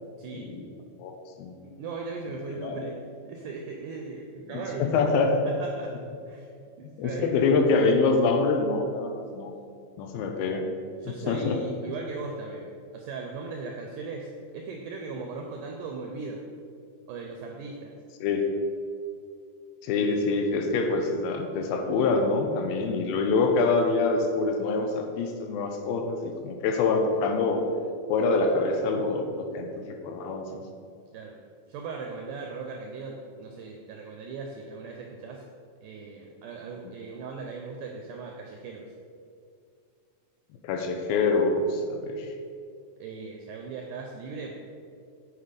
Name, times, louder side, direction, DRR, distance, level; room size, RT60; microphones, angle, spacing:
voice 1, 0.2-0.5 1.6-3.0 3.3-5.0 5.5-6.0 6.3-6.5 6.8-7.4 11.0-16.4 17.1-18.0 31.1-31.4 31.7-35.4 35.8-38.9 43.0-44.5, right 4 dB, 85° right, 1 dB, 1.8 m, -38 dB
voice 2, 1.0-1.6 2.6-2.8 4.5-5.4 7.0-9.1 9.3-9.5 10.0-10.7 11.3-11.6 18.2-18.5 19.8-27.6 28.1-30.5 40.6-42.3, left 3 dB, 80° left, 3 dB, 2.3 m, -25 dB
8.4 x 4.7 x 5.1 m, 2.4 s
omnidirectional pair, 4.4 m